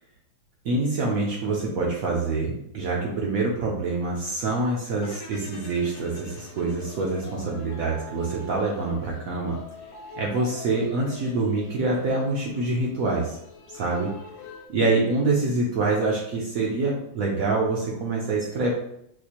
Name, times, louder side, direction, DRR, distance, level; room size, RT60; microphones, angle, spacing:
voice 1, 0.6-9.6 10.2-13.4 13.7-14.1 14.7-18.7, right 3 dB, 65° right, -2 dB, 0.8 m, -26 dB
sound 1, 5.0-8.2, left 4 dB, 60° left, 0.9 m, -46 dB
sound 2, 5.7-14.7, left 4 dB, 85° left, 1.4 m, -44 dB
4.4 x 2.4 x 2.9 m, 0.75 s
omnidirectional pair, 2.1 m